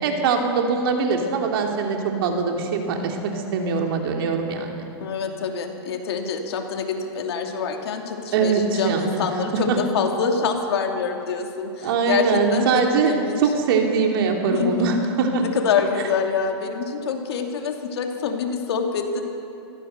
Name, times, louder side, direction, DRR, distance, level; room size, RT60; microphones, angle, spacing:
voice 1, 0.0-4.9 8.3-9.2 9.7-9.8 11.8-15.4, right 5 dB, 55° right, 2 dB, 3.3 m, -22 dB
voice 2, 5.0-13.4 14.5-14.9 15.4-19.2, left 6 dB, 65° left, 3 dB, 2.9 m, -26 dB
24.5 x 15.5 x 6.9 m, 2.8 s
hypercardioid pair, 135°, 14 cm